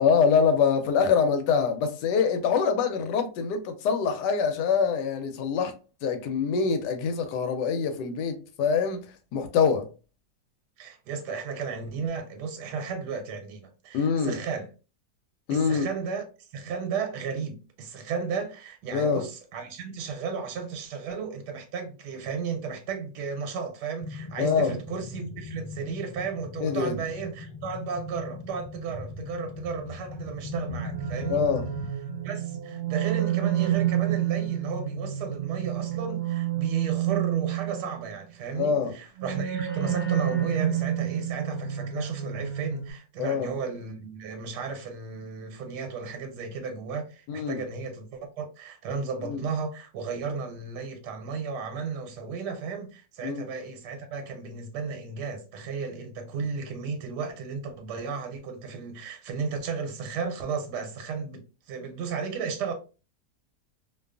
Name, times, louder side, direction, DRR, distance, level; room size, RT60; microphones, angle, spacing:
voice 1, 0.0-5.7 6.0-9.0 9.3-9.9 13.9-14.4 15.5-15.9 18.9-19.2 24.4-24.8 26.6-27.0 31.3-31.6 38.6-38.9 43.2-43.5 47.3-47.6 49.2-49.4 53.2-53.5, left 6 dB, 85° left, 1.2 m, -24 dB
voice 2, 10.8-14.7 15.5-31.4 32.2-62.7, right 5 dB, 85° right, 1.2 m, -34 dB
sound 1, 24.0-31.9, left 3 dB, 35° left, 1.0 m, -40 dB
sound 2, 30.5-38.1 39.2-42.9, right 11 dB, 55° right, 0.7 m, -29 dB
2.7 x 2.3 x 2.3 m
omnidirectional pair, 1.8 m